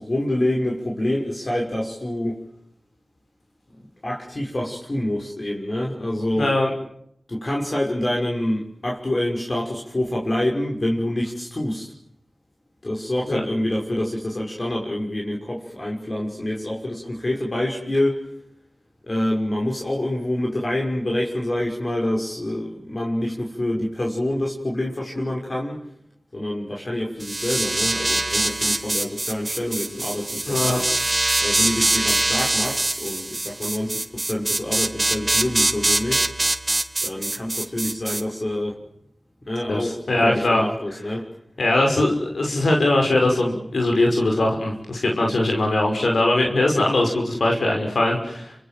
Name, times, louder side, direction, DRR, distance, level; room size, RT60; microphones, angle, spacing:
voice 1, 0.0-2.3 3.8-6.5 7.3-11.9 12.8-18.2 19.0-25.8 26.3-30.8 31.4-36.3 37.0-38.8 39.5-41.2, left 1 dB, 45° left, -2 dB, 6.1 m, -26 dB
voice 2, 6.4-6.7 13.3-13.4 30.5-30.8 39.7-40.6 41.6-48.6, left 2 dB, 85° left, 1 dB, 5.9 m, -21 dB
sound 1, 27.2-38.2, right 2 dB, 40° right, 1.8 m, -23 dB
29.5 x 25.5 x 7.8 m, 0.71 s
wide cardioid pair, 50°, 0 cm